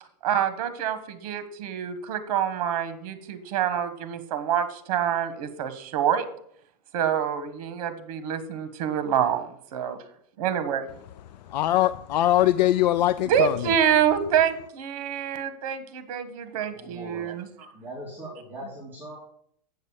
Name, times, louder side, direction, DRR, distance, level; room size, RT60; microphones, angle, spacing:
voice 1, 0.2-6.2 6.9-10.0 10.4-10.9 13.2-17.7, right 9 dB, 55° right, 1.4 m, -26 dB
voice 2, 11.5-13.6, left 14 dB, 90° left, 0.5 m, -22 dB
voice 3, 16.7-17.3 17.7-19.2, equal, 10° right, 2.3 m, -40 dB
8.3 x 6.6 x 7.2 m
supercardioid pair, 165°, 21 cm